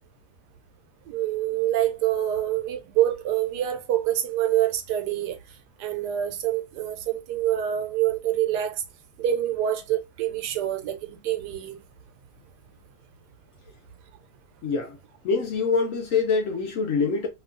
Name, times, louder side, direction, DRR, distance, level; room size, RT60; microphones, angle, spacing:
voice 1, 1.1-5.4 5.8-8.8 9.2-11.8, right 12 dB, 80° right, 1.2 m, -26 dB
voice 2, 14.6-15.0 15.2-17.3, left 4 dB, 65° left, 0.9 m, -24 dB
2.9 x 2.3 x 2.5 m
omnidirectional pair, 1.7 m